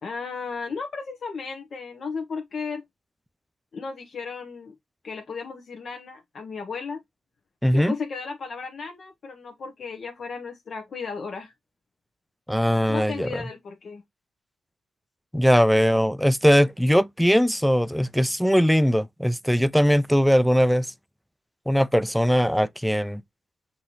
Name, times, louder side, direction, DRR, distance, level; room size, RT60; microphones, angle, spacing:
voice 1, 0.0-2.8 3.7-4.7 5.0-7.0 7.7-11.5 12.9-14.0, left 5 dB, 55° left, 0.8 m, -34 dB
voice 2, 7.6-7.9 12.5-13.4 15.3-20.9 21.7-23.2, equal, ahead, 0.3 m, -20 dB
5.9 x 2.7 x 2.9 m
cardioid pair, 70°, 0 cm